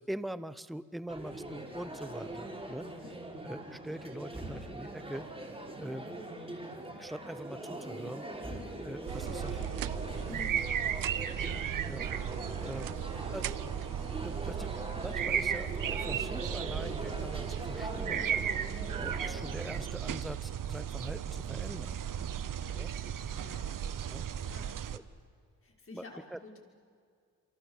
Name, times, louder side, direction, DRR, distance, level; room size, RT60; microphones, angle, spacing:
voice 1, 0.0-2.9 3.4-5.3 5.8-6.1 6.9-9.8 10.2-10.4 11.8-12.1 12.6-12.9 13.3-13.4 14.2-18.3 19.0-22.0 22.7-22.9 24.1-24.3 24.9-25.0 25.9-26.4, right 1 dB, ahead, 15 dB, 0.9 m, -43 dB
sound 1, 1.1-19.9, right 1 dB, 15° right, 5.7 m, -42 dB
voice 2, 2.8-3.1 10.3-11.3 12.7-13.5 22.1-23.8 24.4-24.8 25.6-26.6, left 3 dB, 40° left, 1 dB, 6.0 m, -52 dB
sound 2, 9.1-25.0, right 9 dB, 65° right, 1.2 m, -35 dB
sound 3, 9.3-10.6 10.9-11.5 12.3-13.9, right 15 dB, 90° right, 0.6 m, -44 dB
27.0 x 24.5 x 8.4 m, 2.2 s
cardioid pair, 85°, 35 cm